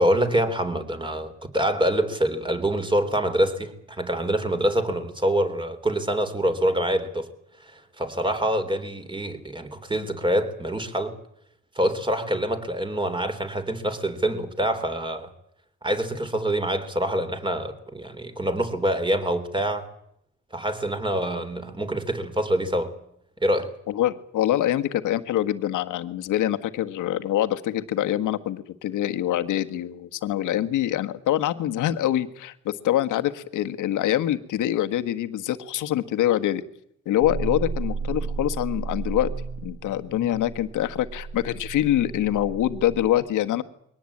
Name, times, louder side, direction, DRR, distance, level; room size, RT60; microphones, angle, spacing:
voice 1, 0.0-7.3 7.6-11.2 11.8-15.3 15.8-19.9 20.5-22.9 23.4-23.7, right 1 dB, 15° right, 3.6 m, -25 dB
voice 2, 23.9-36.6 37.0-39.3 39.6-43.6, left 12 dB, 85° left, 1.6 m, -25 dB
sound 1, 37.2-43.1, right 4 dB, 60° right, 6.8 m, -33 dB
22.5 x 18.5 x 8.7 m
cardioid pair, 90°, 30 cm